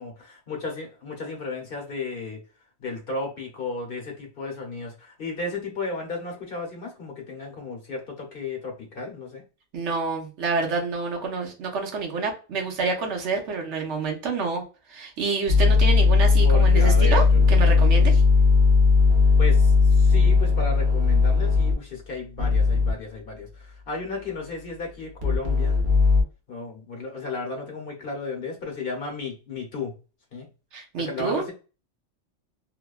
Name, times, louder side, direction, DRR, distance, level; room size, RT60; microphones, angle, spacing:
voice 1, 0.0-2.4 2.8-9.4 16.4-17.5 19.4-25.8 26.5-29.9 30.3-30.5 31.1-31.5, left 3 dB, 55° left, 1 dB, 0.9 m, -34 dB
voice 2, 9.7-14.6 14.9-18.2 30.7-31.4, right 4 dB, 75° right, 2 dB, 1.1 m, -28 dB
sound 1, 15.5-21.7 22.4-22.9 25.2-26.2, left 4 dB, 50° right, 0.7 m, -18 dB
3.0 x 2.1 x 2.2 m, 0.33 s
omnidirectional pair, 1.2 m